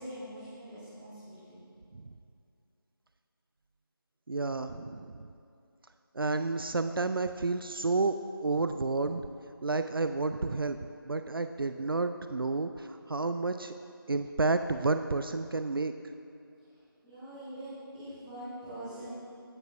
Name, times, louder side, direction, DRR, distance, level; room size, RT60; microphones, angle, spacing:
voice 1, 0.0-1.4 17.0-19.1, right 1 dB, 5° right, -15 dB, 1.3 m, -43 dB
voice 2, 4.3-5.3 6.1-8.2 8.4-9.3 9.6-13.7 14.1-15.9, right 3 dB, 70° right, 9 dB, 0.4 m, -30 dB
15.5 x 6.3 x 2.5 m, 2.6 s
figure-of-eight pair, 170°, 12 cm